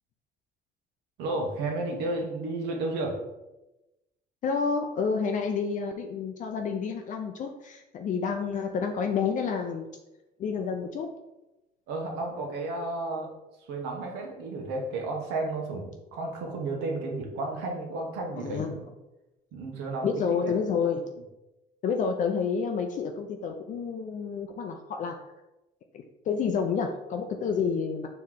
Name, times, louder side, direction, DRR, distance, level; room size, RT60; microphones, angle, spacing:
voice 1, 1.2-3.2 11.9-13.3 13.7-18.8 19.5-20.5, right 2 dB, 85° right, 0 dB, 1.1 m, -32 dB
voice 2, 4.4-9.9 10.4-11.1 18.4-18.8 20.0-21.0 21.8-25.2 25.9-28.1, left 6 dB, 50° left, 3 dB, 0.4 m, -29 dB
4.5 x 3.1 x 3.7 m, 0.99 s
cardioid pair, 110°, 17 cm